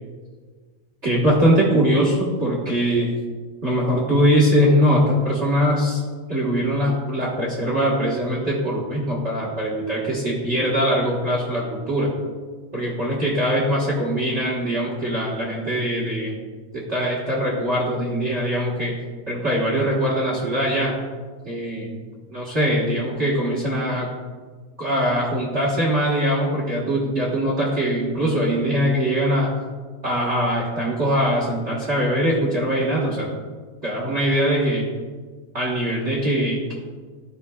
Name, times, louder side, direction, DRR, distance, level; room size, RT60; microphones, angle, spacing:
voice 1, 1.0-3.1 3.6-6.0 6.3-12.1 12.7-16.4 16.7-18.9 19.3-20.9 21.4-22.0 22.3-24.1 24.8-29.5 30.0-33.3 33.8-34.8 35.5-36.7, equal, 65° right, -5 dB, 0.6 m, -22 dB
15.5 x 5.3 x 2.3 m, 1.5 s
omnidirectional pair, 3.5 m